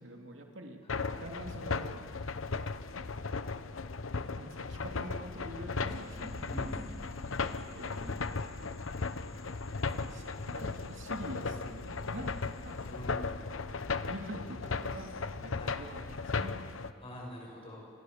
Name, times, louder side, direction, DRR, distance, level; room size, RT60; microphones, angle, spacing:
voice 1, 0.0-0.8 1.2-2.0 4.1-6.5 7.4-8.2 9.9-12.8 13.6-13.8 14.1-16.5, right 1 dB, 65° right, 2 dB, 3.0 m, -45 dB
sound 1, 0.9-16.9, left 4 dB, 85° left, 0.9 m, -36 dB
sound 2, 5.9-12.9, equal, ahead, 4.1 m, -51 dB
voice 2, 6.5-6.8 12.8-13.4 15.5-15.8 17.0-17.8, equal, 30° left, -1 dB, 6.9 m, -45 dB
29.0 x 29.0 x 6.8 m, 2.3 s
head